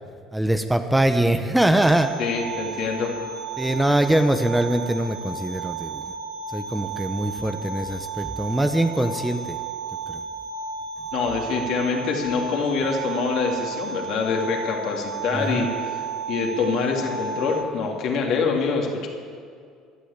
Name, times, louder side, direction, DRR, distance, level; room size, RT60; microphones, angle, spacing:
voice 1, 0.3-2.1 3.6-6.0 6.5-9.6 10.1-10.2 15.3-15.7, right 1 dB, 5° right, 7 dB, 1.0 m, -22 dB
sound 1, 1.8-17.6, right 4 dB, 65° right, 1.1 m, -33 dB
voice 2, 2.2-3.2 11.1-15.7 16.3-19.1, left 5 dB, 60° left, 0 dB, 3.0 m, -25 dB
17.0 x 11.5 x 7.5 m, 2.2 s
hypercardioid pair, 75°, 0 cm